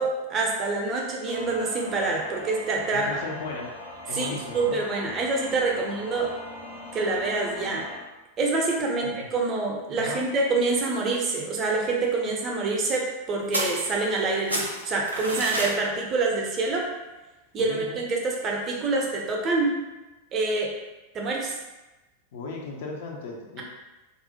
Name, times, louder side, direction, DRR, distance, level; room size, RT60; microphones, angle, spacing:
voice 1, 0.0-3.2 4.1-6.3 6.9-7.9 8.4-16.9 17.5-19.8 20.3-20.7 21.1-21.6, right 3 dB, 30° right, -1 dB, 0.5 m, -26 dB
sound 1, 1.2-8.0, left 2 dB, 85° left, 1.0 m, -41 dB
voice 2, 2.9-3.7 4.1-4.8 5.7-5.9 9.0-9.3 10.0-10.2 17.7-18.0 22.3-23.6, left 3 dB, 55° left, 0 dB, 0.4 m, -36 dB
sound 2, 13.5-14.2 14.5-15.8, right 1 dB, 85° right, 0.4 m, -29 dB
2.4 x 2.0 x 2.7 m, 1.1 s
figure-of-eight pair, 90°, 0 cm